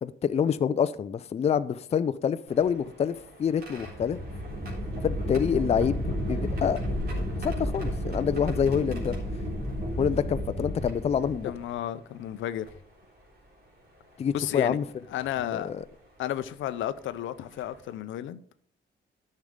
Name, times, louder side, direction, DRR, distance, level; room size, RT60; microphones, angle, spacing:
voice 1, 0.0-4.2 5.0-6.8 7.4-9.2 10.0-11.5 14.2-14.8 15.5-15.8, left 7 dB, 30° left, 0.4 m, -27 dB
sound 1, 2.5-11.8 12.7-12.8 14.2-14.4 15.2-15.4 17.0-17.1 17.5-17.7, equal, 50° right, 3.7 m, -32 dB
voice 2, 11.4-12.7 14.3-14.8 15.1-15.7 16.2-18.4, left 12 dB, 75° left, 0.6 m, -32 dB
10.5 x 6.5 x 3.7 m
cardioid pair, 90°, 20 cm